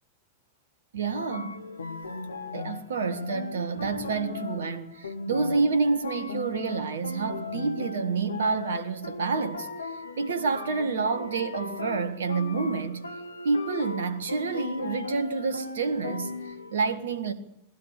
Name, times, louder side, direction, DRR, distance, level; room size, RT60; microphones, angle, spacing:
voice 1, 0.9-1.6 2.5-9.7 10.2-13.1 13.4-17.3, right 4 dB, 65° right, 1.7 m, -28 dB
sound 1, 1.1-16.8, left 3 dB, 75° left, 1.6 m, -37 dB
20.5 x 16.5 x 8.5 m
figure-of-eight pair, 90°, 0 cm